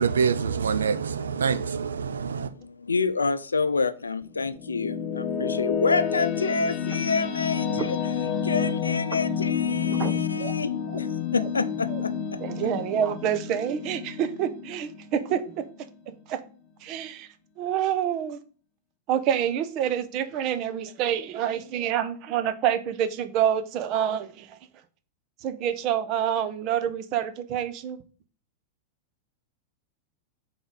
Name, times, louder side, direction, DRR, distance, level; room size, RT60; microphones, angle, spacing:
voice 1, 0.0-2.5, right 6 dB, 75° right, 0.5 m, -25 dB
voice 2, 2.3-8.0 8.4-12.4, left 4 dB, 80° left, 0.4 m, -28 dB
sound 1, 4.2-15.5, left 7 dB, 35° left, 0.7 m, -29 dB
voice 3, 9.9-10.5 11.9-12.0 12.4-15.7 16.3-16.4 16.8-17.3 17.6-18.4 19.1-24.6 25.4-28.0, right 9 dB, 40° right, 0.8 m, -27 dB
4.6 x 3.9 x 5.5 m
figure-of-eight pair, 90°, 0 cm